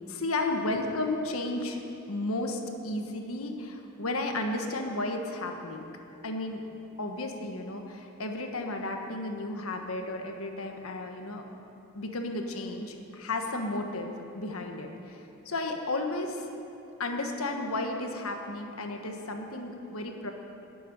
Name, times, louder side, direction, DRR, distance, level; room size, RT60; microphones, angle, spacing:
voice 1, 0.1-1.8 2.1-5.8 6.2-6.6 7.0-11.4 11.9-14.1 14.3-16.5 17.0-20.3, left 2 dB, 75° left, 3 dB, 1.4 m, -33 dB
12.0 x 7.7 x 9.9 m, 2.8 s
head